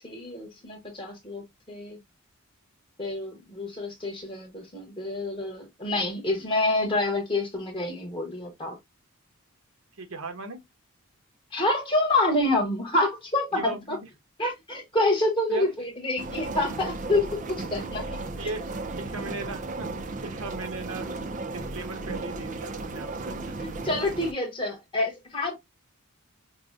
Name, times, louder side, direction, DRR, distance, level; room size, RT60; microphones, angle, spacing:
voice 1, 0.0-2.0 3.0-8.8 11.5-14.0 14.4-18.2 23.6-25.5, left 2 dB, 25° left, 1.1 m, -27 dB
voice 2, 10.0-10.6 13.5-14.1 15.5-15.7 18.4-18.6 18.9-19.9 20.2-21.1 21.5-23.5, right 3 dB, 75° right, 0.8 m, -37 dB
sound 1, 16.2-24.3, right 3 dB, 35° right, 0.4 m, -35 dB
4.8 x 2.1 x 2.4 m
head